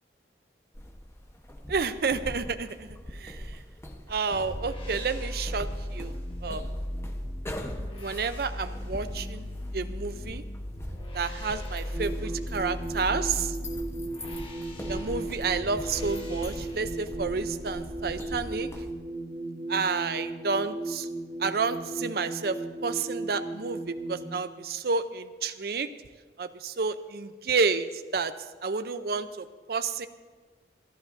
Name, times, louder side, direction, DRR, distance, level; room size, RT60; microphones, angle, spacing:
sound 1, 0.7-18.9, left 1 dB, 15° left, 1.0 m, -42 dB
voice 1, 1.7-3.6 4.1-6.6 8.0-9.5 9.7-10.4 11.1-13.6 14.9-18.7 19.7-21.1 21.4-25.9 26.4-28.3 28.6-30.1, right 4 dB, 60° right, 10 dB, 0.5 m, -30 dB
sound 2, 4.3-17.1, equal, 30° left, 1.5 m, -37 dB
sound 3, 11.9-24.3, right 2 dB, 25° right, 1.7 m, -36 dB
27.5 x 11.5 x 2.6 m, 1.4 s
head